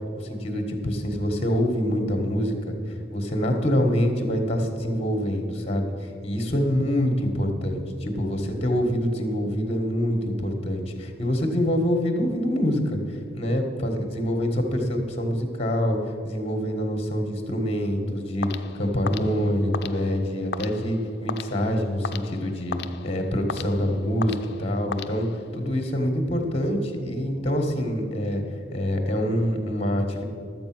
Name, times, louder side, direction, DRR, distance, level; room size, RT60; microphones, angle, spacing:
voice 1, 0.2-2.8 3.1-7.8 8.2-16.0 16.2-22.8 23.0-25.3 25.5-28.4 28.7-30.2, equal, 30° left, 4 dB, 1.4 m, -25 dB
sound 1, 18.4-25.7, left 6 dB, 60° left, 0.4 m, -37 dB
12.0 x 7.8 x 6.1 m, 2.5 s
head